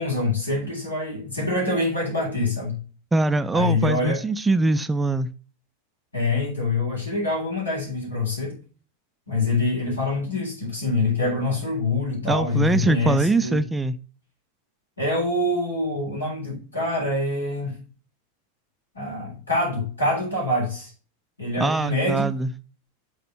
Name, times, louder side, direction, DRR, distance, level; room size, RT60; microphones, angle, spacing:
voice 1, 0.0-2.8 3.5-4.2 6.1-8.6 9.3-13.6 15.0-17.7 18.9-20.9 21.4-22.3, left 2 dB, 80° left, 3.7 m, -25 dB
voice 2, 3.1-5.3 12.2-14.0 21.6-22.5, right 2 dB, 10° right, 0.4 m, -22 dB
6.7 x 4.2 x 5.7 m
figure-of-eight pair, 90°, 0 cm